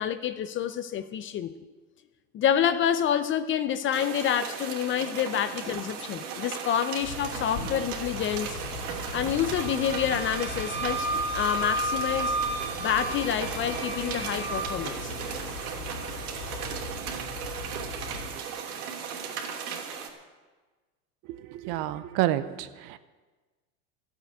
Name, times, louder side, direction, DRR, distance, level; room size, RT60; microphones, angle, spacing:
voice 1, 0.0-1.5 2.3-8.6 9.1-12.4 12.8-15.1, left 9 dB, 25° left, 12 dB, 0.6 m, -28 dB
sound 1, 3.9-20.1, right 7 dB, 75° right, 2.9 m, -36 dB
sound 2, 7.0-18.4, left 4 dB, 85° left, 4.6 m, -40 dB
Wind instrument woodwind instrument, 9.6-14.8, right 1 dB, 10° right, 2.7 m, -32 dB
voice 2, 21.5-23.0, right 14 dB, 50° right, 13 dB, 0.9 m, -29 dB
13.0 x 8.1 x 9.3 m, 1.3 s
supercardioid pair, 120°, 45 cm